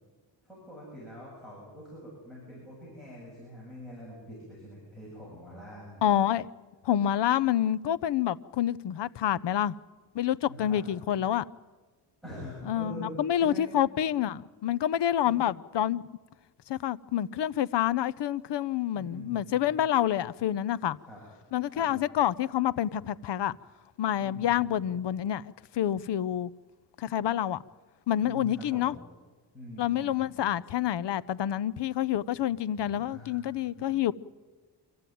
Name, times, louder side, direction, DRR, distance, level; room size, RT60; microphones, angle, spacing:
voice 1, 0.4-6.1 10.5-10.8 12.2-13.7 15.2-15.5 19.0-19.5 21.0-21.2 21.7-21.9 24.2-24.5 28.2-28.9 29.5-30.2 32.8-33.4 33.8-33.9, equal, ahead, 7.9 m, -44 dB
voice 2, 6.0-6.5 6.8-9.8 10.1-11.4 12.7-16.1 16.7-21.0 21.5-23.6 24.0-25.4 25.7-26.5 27.0-27.6 28.1-29.0 29.8-34.1, left 11 dB, 70° left, 0.6 m, -28 dB
26.0 x 14.5 x 9.2 m
wide cardioid pair, 175°, 45 cm